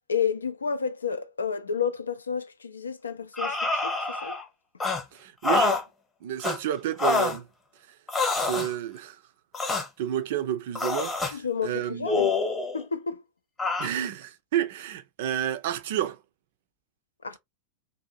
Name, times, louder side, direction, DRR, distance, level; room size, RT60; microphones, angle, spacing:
voice 1, 0.1-4.4 11.3-12.3 12.7-13.2 17.2-17.4, left 6 dB, 75° left, 0.4 m, -30 dB
sound 1, 3.3-4.4 4.8-5.0 5.4-5.8 6.4-6.6 7.0-7.4 8.1-8.7 9.5-9.9 10.8-11.3 12.1-12.8 13.6-13.9, left 3 dB, 15° left, 0.8 m, -26 dB
voice 2, 5.1-5.8 6.2-7.5 8.5-9.2 9.6-12.3 13.8-16.2, right 11 dB, 55° right, 0.4 m, -30 dB
2.7 x 2.4 x 2.7 m
figure-of-eight pair, 90°, 0 cm